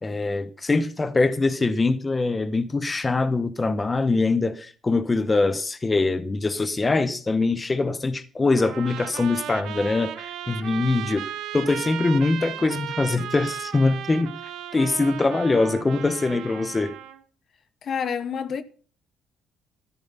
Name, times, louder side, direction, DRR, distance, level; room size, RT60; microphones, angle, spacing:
voice 1, 0.0-14.3 14.7-16.9, left 3 dB, 20° left, 0.9 m, -23 dB
Trumpet, 8.6-17.2, right 10 dB, 75° right, 1.2 m, -35 dB
voice 2, 17.8-18.6, left 7 dB, 50° left, 1.0 m, -28 dB
13.5 x 9.9 x 5.5 m
cardioid pair, 105°, 0 cm